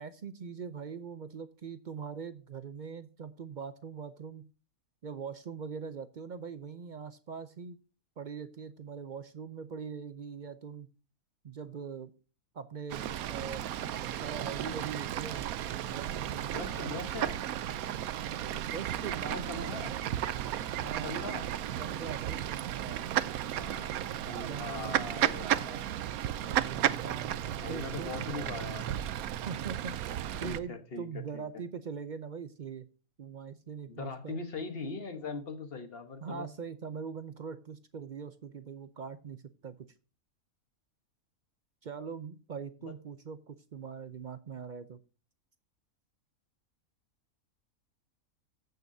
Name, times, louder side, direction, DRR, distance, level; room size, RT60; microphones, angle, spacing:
voice 1, 0.0-4.5 5.0-7.8 8.2-10.9 11.4-12.1 12.5-13.9 14.2-15.4 15.9-17.0 18.2-20.0 20.8-23.1 24.5-25.4 26.4-28.4 29.5-30.0 30.4-32.9 33.2-34.4 36.2-39.7 41.8-45.0, right 6 dB, 60° right, 12 dB, 0.5 m, -42 dB
Fowl / Bird, 12.9-30.6, right 11 dB, 85° right, 1.1 m, -34 dB
voice 2, 16.5-17.4 19.3-19.9 21.0-21.5 23.2-25.9 27.6-29.0 30.4-31.1 31.3-31.4 33.9-36.5 42.9-43.0, left 4 dB, 45° left, 8 dB, 1.3 m, -41 dB
15.0 x 6.5 x 2.7 m, 0.35 s
omnidirectional pair, 1.5 m